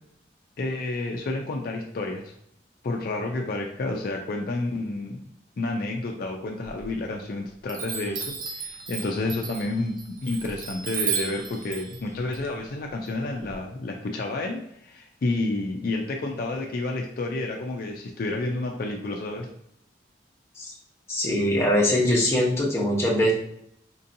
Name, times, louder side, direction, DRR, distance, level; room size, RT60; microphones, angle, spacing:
voice 1, 0.6-2.3 2.8-5.2 5.6-19.5, left 2 dB, 55° left, 1 dB, 0.4 m, -30 dB
Chime, 6.6-7.3 7.7-13.5, right 6 dB, 50° right, 0.4 m, -34 dB
voice 2, 21.1-23.3, left 1 dB, 15° left, -5 dB, 0.8 m, -22 dB
4.4 x 2.7 x 2.6 m, 0.74 s
head